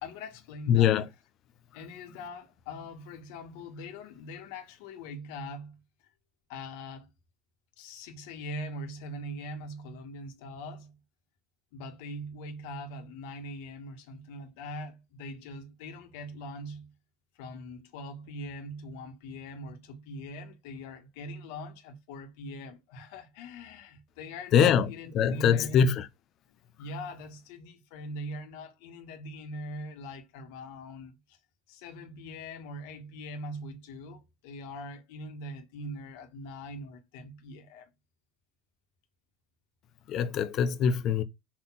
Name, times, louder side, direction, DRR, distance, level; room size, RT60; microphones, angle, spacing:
voice 1, 0.0-1.0 1.7-5.8 6.5-7.1 7.8-11.0 11.7-16.9 17.4-25.8 26.8-31.4 31.7-37.9, left 1 dB, 70° left, 1.9 m, -42 dB
voice 2, 0.7-1.1 24.5-26.1 40.1-41.2, left 8 dB, 40° left, 0.8 m, -23 dB
5.7 x 4.3 x 6.0 m
cardioid pair, 165°, 0 cm